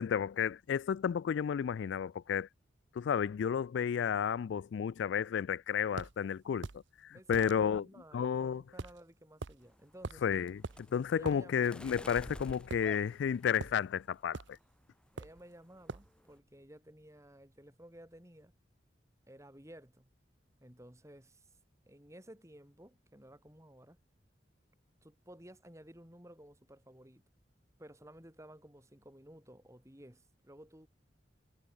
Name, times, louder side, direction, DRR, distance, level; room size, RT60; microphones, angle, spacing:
voice 1, 0.0-2.5 3.0-6.7 7.0-7.8 8.1-8.6 10.2-10.6 10.9-14.6, left 7 dB, 70° left, 0.3 m, -32 dB
sound 1, 6.0-6.1 6.6-6.8 7.3-7.5 8.8-9.0 9.4-9.6 10.0-10.3 10.6-10.8 11.2-11.4 12.7-13.2 13.6-13.8 14.3-14.6 15.2-15.4 15.9-16.1, right 3 dB, 75° right, 0.8 m, -42 dB
voice 2, 7.1-10.2 11.1-11.9 15.1-18.5 19.3-20.1 20.6-21.5 21.9-24.0 25.0-27.2 27.8-30.9, right 1 dB, 15° right, 5.2 m, -55 dB
sound 2, 9.6-14.0 14.5-14.9 15.2-15.5 15.7-16.4, left 1 dB, 5° left, 0.5 m, -51 dB
head